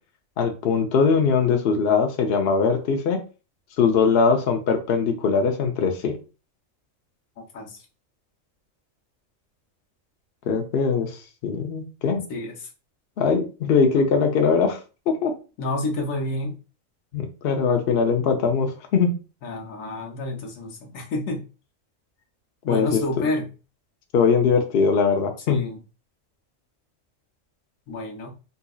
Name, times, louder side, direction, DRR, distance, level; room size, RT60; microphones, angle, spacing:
voice 1, 0.4-3.2 3.8-6.1 10.5-12.2 13.2-14.8 15.1-15.3 17.1-19.1 22.7-23.0 24.1-25.6, left 5 dB, 60° left, 3 dB, 0.8 m, -21 dB
voice 2, 7.4-7.8 12.3-12.7 15.6-16.5 19.4-21.4 22.6-23.4 25.5-25.8 27.9-28.3, left 2 dB, 75° left, 1 dB, 1.2 m, -29 dB
4.1 x 2.7 x 2.3 m, 0.33 s
omnidirectional pair, 1.4 m